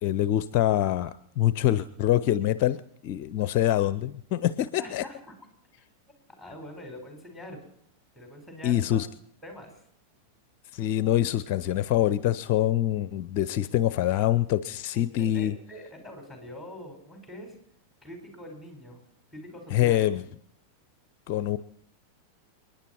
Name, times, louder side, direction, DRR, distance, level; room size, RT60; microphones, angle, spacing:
voice 1, 0.0-5.0 8.6-9.1 10.7-15.5 19.7-20.2 21.3-21.6, left 12 dB, 45° left, 16 dB, 0.5 m, -25 dB
voice 2, 4.8-5.3 5.8-5.9 6.4-7.6 8.1-9.0 9.4-9.8 14.9-17.6 18.0-19.0 19.3-20.1, left 1 dB, ahead, 2 dB, 4.8 m, -44 dB
29.5 x 10.0 x 4.4 m, 0.67 s
figure-of-eight pair, 90°, 0 cm